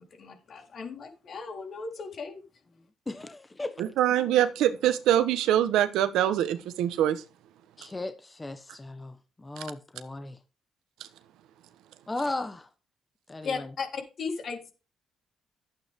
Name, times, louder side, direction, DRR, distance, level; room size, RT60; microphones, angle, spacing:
voice 1, 0.1-2.4 13.4-14.7, left 5 dB, 55° left, 3.9 m, -36 dB
voice 2, 3.1-3.7 7.8-10.4 12.1-12.7 13.3-13.7, left 2 dB, 20° left, 1.0 m, -36 dB
voice 3, 3.8-7.2, right 11 dB, 90° right, 1.2 m, -24 dB
12.5 x 8.7 x 3.7 m
cardioid pair, 90°, 0 cm